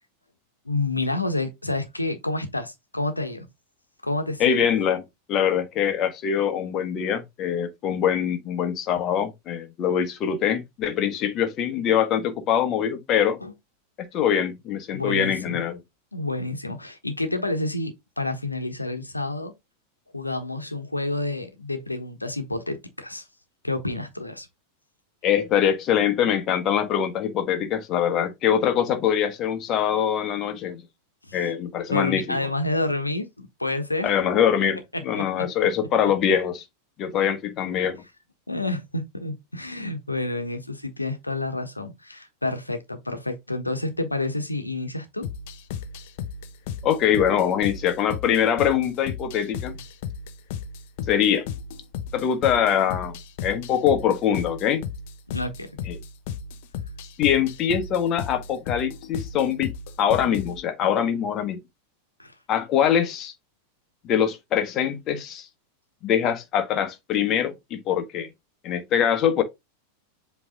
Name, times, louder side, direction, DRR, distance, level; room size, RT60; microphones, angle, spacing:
voice 1, 0.6-3.5 4.0-4.6 13.4-13.5 14.9-15.6 16.1-19.5 20.1-23.2 23.6-24.5 31.3-31.4 31.9-34.1 34.9-35.5 38.5-45.3 55.3-55.7 62.2-62.3, left 2 dB, 85° left, 1.2 m, -29 dB
voice 2, 4.4-5.0 5.3-13.4 14.0-15.8 25.2-30.8 31.3-32.4 34.0-36.6 37.0-38.0 46.8-49.8 51.1-51.4 52.1-54.8 55.9-56.0 57.2-59.7 60.0-61.6 62.5-63.3 64.0-65.5 66.0-68.3 68.6-69.4, left 9 dB, 35° left, 1.4 m, -23 dB
sound 1, 45.2-60.6, left 7 dB, 50° left, 0.7 m, -35 dB
7.7 x 3.4 x 3.7 m
figure-of-eight pair, 90°, 0 cm